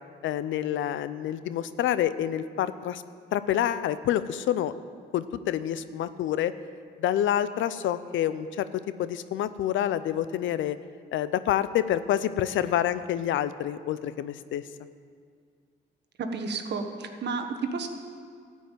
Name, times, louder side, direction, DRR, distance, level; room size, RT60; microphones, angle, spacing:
voice 1, 0.2-3.0 3.3-4.7 5.1-6.5 7.0-8.7 9.0-10.8 11.1-14.6, left 11 dB, 75° left, 14 dB, 0.5 m, -27 dB
voice 2, 16.2-17.9, right 4 dB, 60° right, 6 dB, 1.3 m, -31 dB
13.5 x 5.5 x 9.2 m, 2.1 s
cardioid pair, 90°, 20 cm